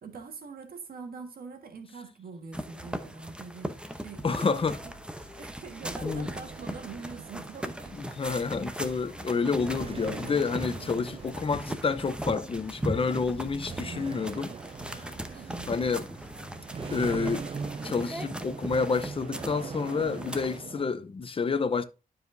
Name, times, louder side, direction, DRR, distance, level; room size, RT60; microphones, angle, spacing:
voice 1, 0.0-4.9 5.4-8.1 15.3-15.8, right 4 dB, 80° right, 1.5 m, -44 dB
sound 1, 2.5-20.6, right 1 dB, 5° right, 0.8 m, -39 dB
sound 2, 3.5-17.9, equal, 10° left, 2.0 m, -53 dB
voice 2, 4.2-4.8 6.0-6.3 8.0-14.5 14.9-15.1 15.7-16.1 16.9-17.5 17.8-21.9, left 5 dB, 35° left, 0.7 m, -29 dB
sound 3, 5.8-20.9, right 6 dB, 40° right, 0.4 m, -42 dB
12.0 x 4.9 x 2.6 m
cardioid pair, 90°, 15 cm